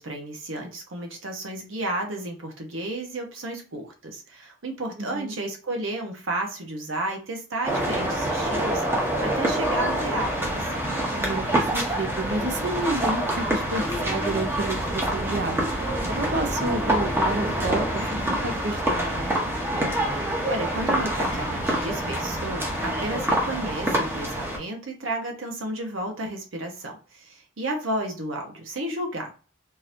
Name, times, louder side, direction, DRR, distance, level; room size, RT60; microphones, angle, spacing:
voice 1, 0.0-10.8 20.1-29.3, right 1 dB, 80° right, 2 dB, 0.9 m, -32 dB
voice 2, 5.0-5.4 11.1-15.7 16.1-19.3, right 2 dB, 60° right, 6 dB, 0.7 m, -30 dB
sound 1, 7.6-24.6, right 1 dB, 10° right, 0.7 m, -26 dB
3.8 x 2.8 x 2.6 m, 0.36 s
head